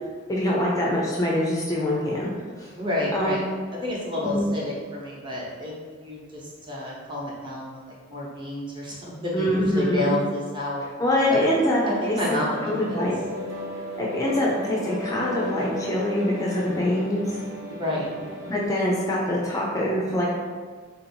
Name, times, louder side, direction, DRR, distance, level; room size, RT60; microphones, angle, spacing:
voice 1, 0.3-2.3 2.6-2.7 3.1-3.4 4.2-4.4 9.3-10.1 11.0-11.8 12.1-12.2 12.6-13.2 14.0-17.4 18.5-20.3, left 1 dB, 15° left, -4 dB, 0.5 m, -24 dB
voice 2, 2.7-3.4 3.7-5.7 6.0-7.8 8.1-10.9 11.3-11.4 11.8-13.0 17.7-18.1, left 1 dB, 25° right, -5 dB, 0.9 m, -30 dB
sound 1, 11.3-18.7, equal, 75° right, 1.3 m, -35 dB
3.4 x 2.7 x 4.4 m, 1.6 s
head